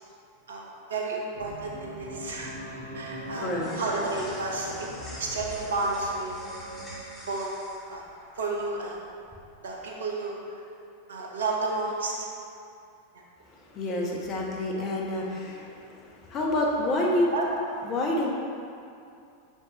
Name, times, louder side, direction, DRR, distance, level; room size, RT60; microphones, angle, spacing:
voice 1, 0.9-2.5 2.9-3.5 3.7-4.9 5.2-6.3 7.3-7.5 7.9-8.0 8.4-9.0 9.6-10.4 11.1-12.1 17.3-17.5, right 3 dB, 65° right, -2 dB, 0.9 m, -31 dB
sound 1, 1.3-7.0, equal, 65° left, 1.1 m, -40 dB
sound 2, 1.5-9.9, equal, 10° left, 1.5 m, -48 dB
voice 2, 3.3-3.7 13.5-17.3 17.8-18.3, left 1 dB, 30° left, -2 dB, 1.0 m, -28 dB
6.9 x 5.5 x 3.1 m, 2.5 s
figure-of-eight pair, 90°, 0 cm